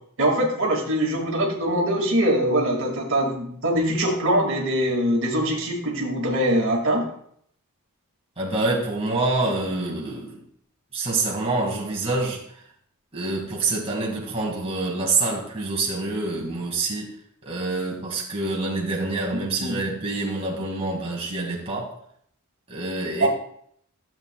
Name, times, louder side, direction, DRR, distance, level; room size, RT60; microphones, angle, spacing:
voice 1, 0.2-7.1 19.6-19.7 23.2-23.3, right 1 dB, 60° right, -1 dB, 2.0 m, -23 dB
voice 2, 8.4-10.3 10.9-12.4 13.1-17.1 17.4-22.0 22.7-23.3, right 3 dB, 25° right, -3 dB, 2.0 m, -26 dB
14.0 x 7.8 x 2.3 m, 0.65 s
head